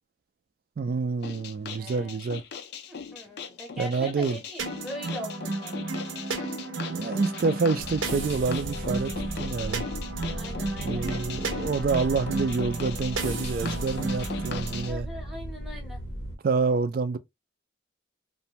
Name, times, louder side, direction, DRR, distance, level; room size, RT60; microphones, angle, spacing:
voice 1, 0.8-2.4 3.8-4.4 6.9-9.8 10.8-15.1 16.4-17.2, right 4 dB, 50° right, 0.3 m, -28 dB
sound 1, 1.2-14.9, left 6 dB, 55° left, 0.4 m, -39 dB
voice 2, 1.8-2.3 2.9-5.7 7.1-7.2 10.4-11.0 14.9-16.0, left 1 dB, ahead, 0.7 m, -41 dB
sound 2, 4.6-14.9, right 3 dB, 85° right, 0.6 m, -33 dB
sound 3, 7.8-16.4, equal, 90° left, 1.0 m, -37 dB
2.5 x 2.1 x 2.7 m
head